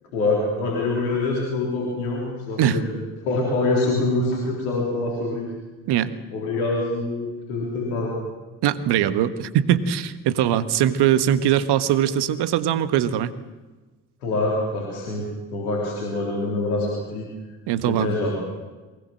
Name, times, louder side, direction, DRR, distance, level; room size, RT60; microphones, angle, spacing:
voice 1, 0.1-3.0 3.2-5.5 6.3-8.2 14.2-17.3 17.8-18.4, left 2 dB, 85° left, -1 dB, 3.8 m, -25 dB
voice 2, 8.6-13.3 17.7-18.1, right 10 dB, 70° right, 12 dB, 1.5 m, -21 dB
22.5 x 19.5 x 7.7 m, 1.2 s
hypercardioid pair, 45°, 42 cm